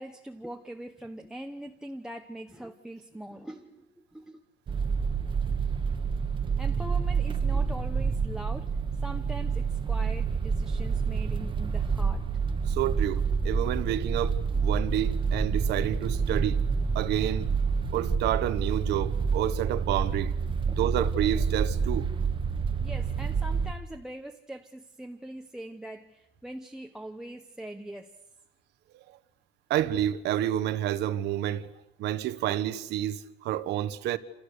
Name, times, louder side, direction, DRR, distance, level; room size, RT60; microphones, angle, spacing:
voice 1, 0.0-4.4 6.6-8.7 9.0-12.3 20.7-21.0 22.8-28.1, right 1 dB, 5° right, 0.9 m, -42 dB
sound 1, 4.7-23.7, right 5 dB, 25° right, 1.3 m, -28 dB
voice 2, 12.7-16.6 16.9-17.5 17.9-20.3 20.8-22.1 28.9-29.0 29.7-31.7 32.0-34.2, right 12 dB, 55° right, 1.4 m, -29 dB
28.0 x 28.0 x 6.7 m
cardioid pair, 175°, 20 cm